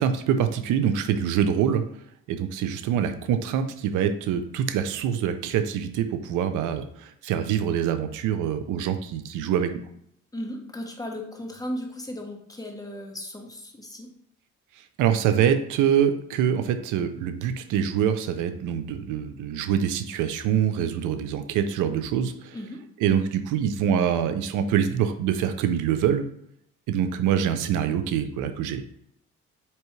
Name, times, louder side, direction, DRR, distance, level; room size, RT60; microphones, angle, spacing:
voice 1, 0.0-1.8 2.3-9.7 15.0-22.6 23.0-26.3 26.9-28.8, right 8 dB, 90° right, 9 dB, 0.5 m, -25 dB
voice 2, 10.3-14.1 22.5-22.8, left 1 dB, 10° left, 2 dB, 0.9 m, -36 dB
4.6 x 2.9 x 3.1 m, 0.71 s
cardioid pair, 90°, 30 cm